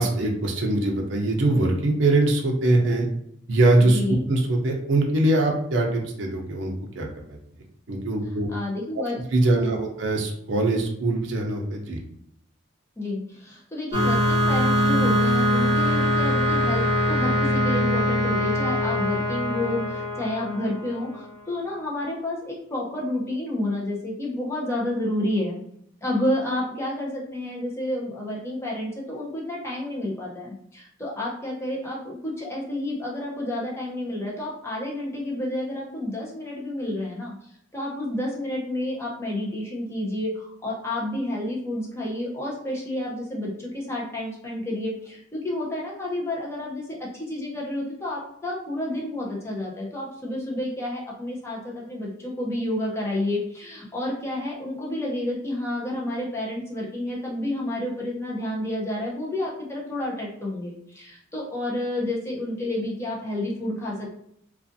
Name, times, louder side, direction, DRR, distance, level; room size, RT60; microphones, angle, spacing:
voice 1, 0.0-3.1 3.5-4.0 4.3-7.4 7.9-8.5 9.3-12.0, right 2 dB, 65° right, 0 dB, 0.5 m, -22 dB
voice 2, 3.8-4.2 8.5-9.2 9.5-9.8 13.0-25.6 26.0-64.1, left 1 dB, 15° left, -4 dB, 0.6 m, -30 dB
sound 1, 13.9-21.3, equal, 20° right, 1.0 m, -23 dB
2.4 x 2.4 x 2.6 m, 0.74 s
head